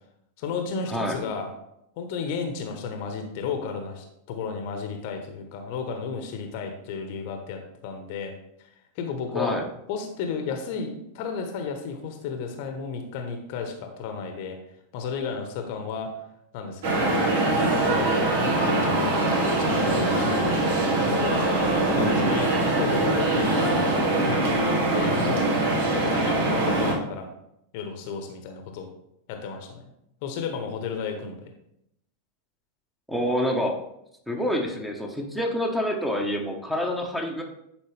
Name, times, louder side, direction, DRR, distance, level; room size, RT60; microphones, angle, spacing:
voice 1, 0.4-1.5 2.0-8.3 8.6-8.7 8.9-9.6 9.9-14.6 14.9-16.1 16.5-17.0 17.5-18.4 18.6-19.4 19.7-20.8 21.0-21.5 21.9-27.3 27.7-28.9 29.3-29.8 30.2-31.4, left 5 dB, 45° left, 5 dB, 1.1 m, -33 dB
sound 1, 16.8-26.9, right 2 dB, 55° right, 1.6 m, -23 dB
voice 2, 21.9-22.4 33.1-33.8 34.3-37.4, equal, ahead, 2 dB, 1.3 m, -27 dB
10.5 x 4.8 x 3.4 m, 0.79 s
figure-of-eight pair, 90°, 0 cm